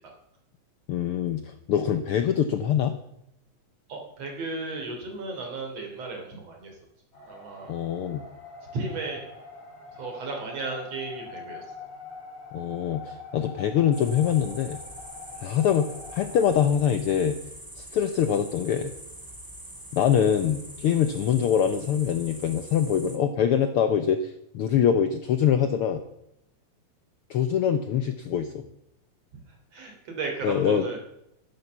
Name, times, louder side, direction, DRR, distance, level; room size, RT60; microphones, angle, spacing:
voice 1, 0.9-3.0 7.7-8.2 12.5-14.8 15.4-17.4 17.8-18.9 19.9-26.0 27.3-28.7 30.4-30.8, left 8 dB, 70° left, 9 dB, 1.3 m, -24 dB
voice 2, 3.9-6.7 7.3-7.7 8.7-9.2 9.9-11.6 15.3-15.5 29.7-31.0, right 3 dB, 60° right, 2 dB, 4.2 m, -34 dB
sound 1, 7.1-16.7, left 4 dB, 20° left, 4.1 m, -44 dB
sound 2, 13.9-23.2, right 1 dB, 10° right, 1.5 m, -44 dB
11.5 x 11.5 x 6.9 m, 0.83 s
omnidirectional pair, 3.4 m